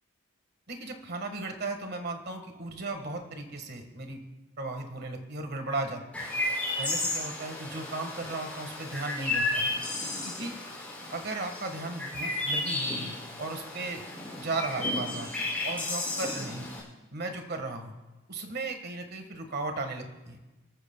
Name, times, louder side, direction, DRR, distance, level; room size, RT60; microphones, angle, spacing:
voice 1, 0.7-4.2 4.6-6.3 6.8-9.7 10.2-10.5 11.1-14.0 14.4-15.3 15.6-16.7 17.1-17.9 18.3-20.4, right 2 dB, 50° right, 6 dB, 1.5 m, -36 dB
Chirp tweet, 6.1-16.8, left 2 dB, 5° left, 5.5 m, -33 dB
29.0 x 14.0 x 2.2 m, 1.1 s
head